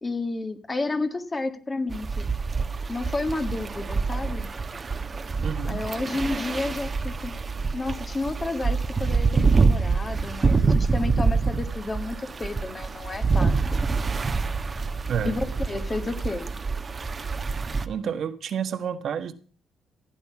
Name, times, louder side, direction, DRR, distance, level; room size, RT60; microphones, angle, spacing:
voice 1, 0.0-2.3 2.9-4.5 5.7-7.3 7.7-13.5 15.2-16.5, left 2 dB, 25° left, 7 dB, 1.9 m, -31 dB
sound 1, 1.9-17.9, right 4 dB, 35° right, 1.2 m, -26 dB
voice 2, 5.4-5.8 15.1-15.4 17.9-19.3, right 7 dB, 65° right, 8 dB, 1.5 m, -30 dB
16.0 x 9.2 x 5.9 m, 0.40 s
cardioid pair, 90°, 0 cm